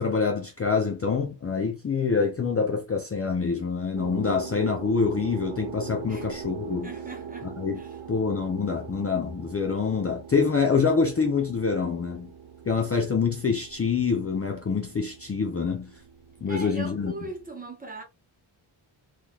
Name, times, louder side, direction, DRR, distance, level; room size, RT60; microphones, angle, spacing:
voice 1, 0.0-6.9 7.4-7.8 8.1-12.3 12.7-16.0 16.4-17.1, left 5 dB, 30° left, 0.5 m, -26 dB
sound 1, 4.0-17.5, right 7 dB, 80° right, 0.9 m, -41 dB
voice 2, 6.8-7.5 7.8-8.0 16.5-18.0, right 2 dB, 15° right, 1.1 m, -39 dB
3.7 x 3.1 x 2.3 m
wide cardioid pair, 155°, 48 cm